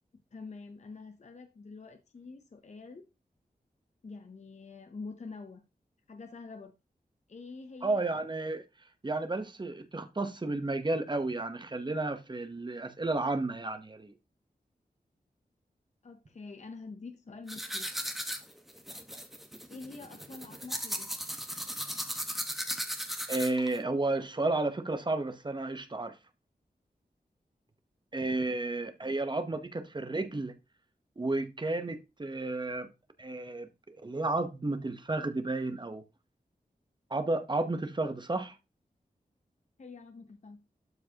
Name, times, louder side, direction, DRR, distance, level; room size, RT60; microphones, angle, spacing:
voice 1, 0.3-3.1 4.0-5.6 6.1-6.7 7.3-8.1 16.0-18.0 19.7-21.1 39.8-40.6, left 4 dB, 45° left, 0.7 m, -46 dB
voice 2, 7.8-8.6 9.0-14.1 23.3-26.2 28.1-30.5 31.2-32.9 33.2-36.0 37.1-38.5, right 2 dB, 30° right, 0.9 m, -32 dB
sound 1, 17.5-23.8, equal, ahead, 1.2 m, -37 dB
12.0 x 4.6 x 2.9 m
wide cardioid pair, 95°, 16 cm